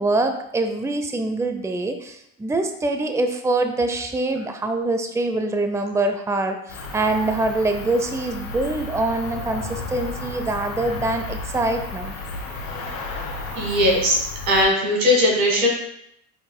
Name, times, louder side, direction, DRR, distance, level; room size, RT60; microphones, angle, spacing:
voice 1, 0.0-12.1, right 2 dB, 5° right, 7 dB, 0.6 m, -24 dB
Cricket, 6.7-14.6, left 2 dB, 80° left, 2.1 m, -33 dB
voice 2, 13.6-14.2 14.5-15.7, left 1 dB, 90° right, -1 dB, 1.8 m, -18 dB
10.5 x 4.1 x 2.2 m, 0.75 s
hypercardioid pair, 65°, 39 cm